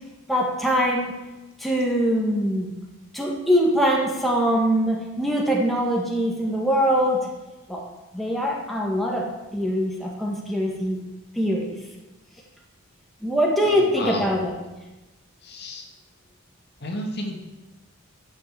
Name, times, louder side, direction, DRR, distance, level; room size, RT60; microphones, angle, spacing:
voice 1, 0.3-1.1 1.6-2.7 3.1-7.3 7.7-7.8 8.1-11.0 11.4-11.8 13.2-14.5, equal, ahead, -2 dB, 1.8 m, -23 dB
voice 2, 13.6-14.3 15.4-15.9 16.8-17.4, left 1 dB, 50° left, 2 dB, 2.1 m, -32 dB
12.0 x 8.1 x 7.5 m, 1.1 s
head